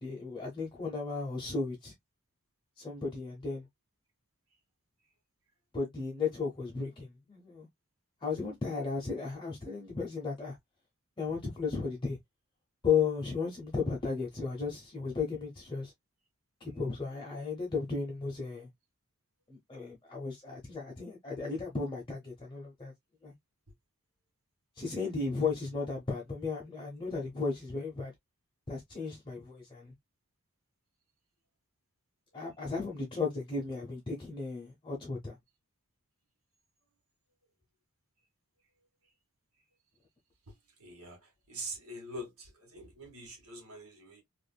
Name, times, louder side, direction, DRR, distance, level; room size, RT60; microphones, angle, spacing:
voice 1, 0.0-1.9 2.8-3.7 5.7-7.7 8.2-10.6 11.2-12.2 12.8-15.9 16.6-18.7 19.5-22.9 23.2-23.3 24.8-28.1 28.7-29.9 32.3-35.4, left 5 dB, 20° left, 0.7 m, -35 dB
voice 2, 40.8-44.2, right 1 dB, 65° right, 1.6 m, -44 dB
3.4 x 2.5 x 2.2 m
head